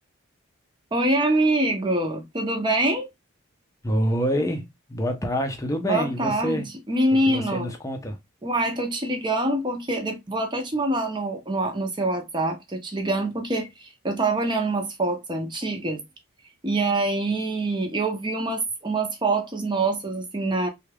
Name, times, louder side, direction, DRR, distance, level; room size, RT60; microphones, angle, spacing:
voice 1, 0.9-3.1 5.8-7.7 8.4-16.0 16.6-20.7, right 2 dB, 20° right, 0.7 m, -25 dB
voice 2, 3.8-6.7 7.2-8.2, equal, 15° left, 0.6 m, -26 dB
3.4 x 2.3 x 3.3 m
head